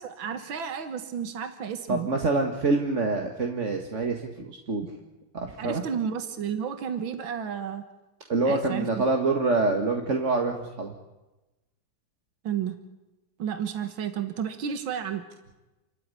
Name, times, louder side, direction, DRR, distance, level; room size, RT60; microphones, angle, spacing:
voice 1, 0.0-2.1 5.6-7.8 8.5-8.9 12.4-12.8 13.4-15.2, right 8 dB, 80° right, 9 dB, 2.2 m, -32 dB
voice 2, 1.9-4.9 5.3-5.8 8.3-10.9, right 3 dB, 40° right, 2 dB, 2.1 m, -26 dB
29.5 x 14.0 x 9.9 m, 1.0 s
omnidirectional pair, 2.1 m